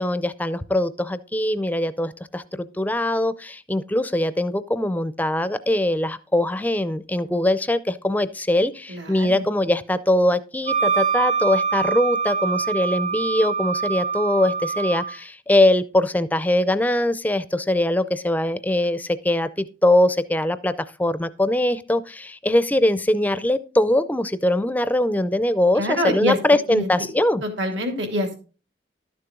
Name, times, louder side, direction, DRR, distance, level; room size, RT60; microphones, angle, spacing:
voice 1, 0.0-20.7 21.0-27.4, left 1 dB, 10° left, 14 dB, 0.4 m, -22 dB
voice 2, 8.9-9.4 25.8-26.4 26.7-26.9 27.4-28.3, equal, 75° right, 5 dB, 2.4 m, -25 dB
Wind instrument woodwind instrument, 10.7-15.2, right 5 dB, 45° right, 1.4 m, -24 dB
12.0 x 6.8 x 3.7 m, 0.35 s
head